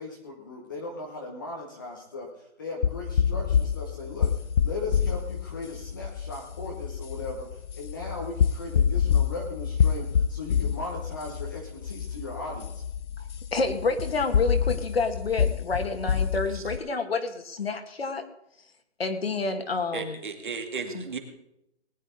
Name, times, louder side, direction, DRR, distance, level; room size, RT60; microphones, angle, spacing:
voice 1, 0.0-4.3 4.6-12.8, left 2 dB, 20° left, -1 dB, 1.1 m, -38 dB
sound 1, 2.8-16.8, left 7 dB, 85° left, 0.7 m, -27 dB
voice 2, 13.2-18.2 19.0-20.2 20.9-21.0, left 3 dB, 60° left, 6 dB, 2.1 m, -29 dB
voice 3, 19.9-21.2, right 5 dB, 45° right, 5 dB, 2.3 m, -34 dB
19.5 x 11.0 x 3.9 m, 0.81 s
hypercardioid pair, 175°, 34 cm